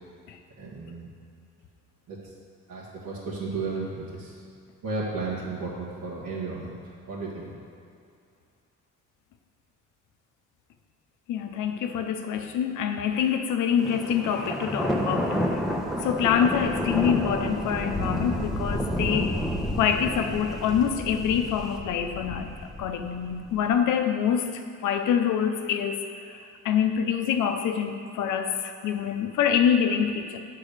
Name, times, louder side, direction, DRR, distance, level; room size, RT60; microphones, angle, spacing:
voice 1, 0.6-1.1 2.1-2.2 2.7-4.4 4.8-6.8 7.1-7.6, right 3 dB, 75° right, -8 dB, 1.7 m, -33 dB
voice 2, 11.3-15.6 16.0-19.4 19.7-22.5 22.8-26.4 26.6-30.4, left 8 dB, 85° left, 6 dB, 0.7 m, -26 dB
Thunder, 13.8-23.6, equal, ahead, 0.8 m, -30 dB
8.5 x 3.7 x 6.6 m, 2.4 s
cardioid pair, 90°, 30 cm